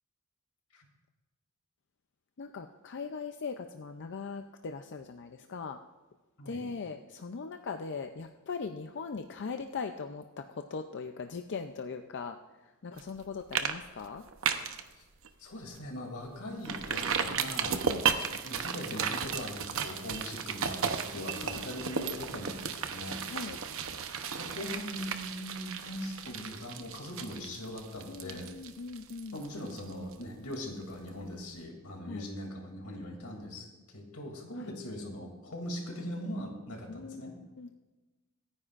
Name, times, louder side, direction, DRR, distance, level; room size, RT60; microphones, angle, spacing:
voice 1, 2.4-5.8 6.5-12.3 12.8-14.2 17.8-18.1 21.1-21.8 23.2-23.6 28.0-29.4 32.1-32.2 36.9-37.7, left 5 dB, 55° left, 6 dB, 0.5 m, -40 dB
sound 1, 13.0-13.2 13.5-13.7 14.0-14.8 15.2-15.3 15.7-15.8 16.6-30.2 30.5-30.6, right 6 dB, 65° right, 0.8 m, -34 dB
voice 2, 15.4-17.8 18.4-23.2 24.4-28.5 29.3-37.3, left 1 dB, 85° left, 1 dB, 2.7 m, -41 dB
26.0 x 9.8 x 2.5 m, 1.2 s
head